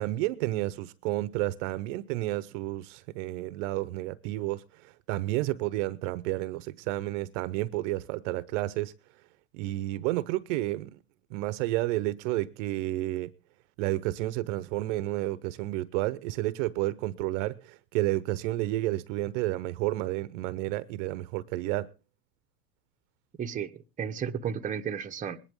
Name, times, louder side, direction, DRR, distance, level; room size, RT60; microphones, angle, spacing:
voice 1, 0.0-8.9 9.5-11.0 11.3-13.3 13.8-21.9, right 17 dB, 50° right, 0.8 m, -31 dB
voice 2, 23.4-25.4, right 7 dB, 15° right, 0.9 m, -33 dB
21.0 x 10.5 x 3.6 m
hypercardioid pair, 100°, 47 cm